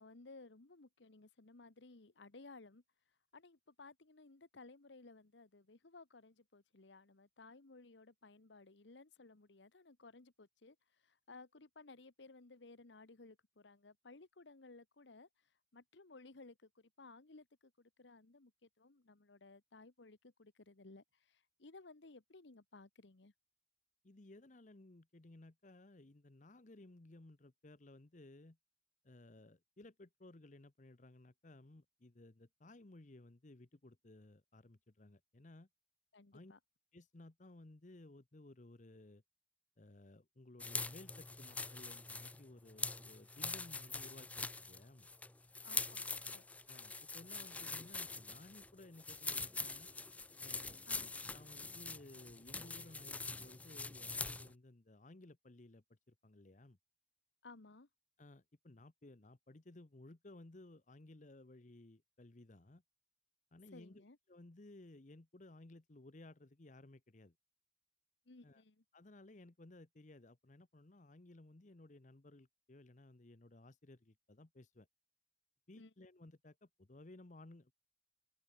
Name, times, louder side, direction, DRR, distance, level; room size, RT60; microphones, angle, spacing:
voice 1, 0.0-2.8 3.3-10.8 11.0-15.3 15.7-23.3 36.1-36.6 45.6-46.4 50.9-51.1 57.4-57.9 63.7-64.2 68.3-68.8 75.8-75.9, left 3 dB, 80° left, 1.2 m, -58 dB
voice 2, 24.0-28.6 29.0-35.7 36.3-36.5 36.9-39.2 39.8-45.1 46.7-49.9 50.4-50.8 51.3-56.8 58.2-62.8 63.5-67.3 68.4-68.6 68.9-74.9 75.7-77.7, left 2 dB, 40° left, 0.9 m, -58 dB
sound 1, 40.6-54.5, left 3 dB, 10° left, 0.3 m, -44 dB
open air
head